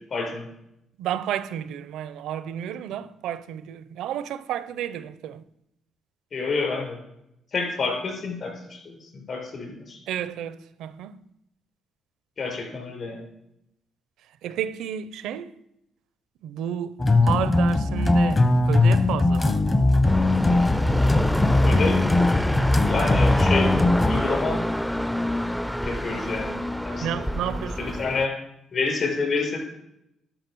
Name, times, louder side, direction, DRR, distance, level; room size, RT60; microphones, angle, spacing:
voice 1, 0.1-0.5 6.3-7.0 7.5-10.0 12.4-13.2 21.6-22.0 22.8-23.7 24.0-24.6 25.8-26.5 26.8-27.0 27.8-28.4 28.7-29.6, left 4 dB, 50° left, 4.9 m, -28 dB
voice 2, 1.0-5.5 10.1-11.2 14.4-15.5 16.4-19.7 27.0-28.0, right 10 dB, 85° right, 0.5 m, -31 dB
sound 1, 17.0-24.2, left 2 dB, 30° left, 0.9 m, -20 dB
sound 2, 20.1-28.3, equal, 5° left, 0.4 m, -27 dB
12.0 x 5.7 x 6.2 m
cardioid pair, 90°, 0 cm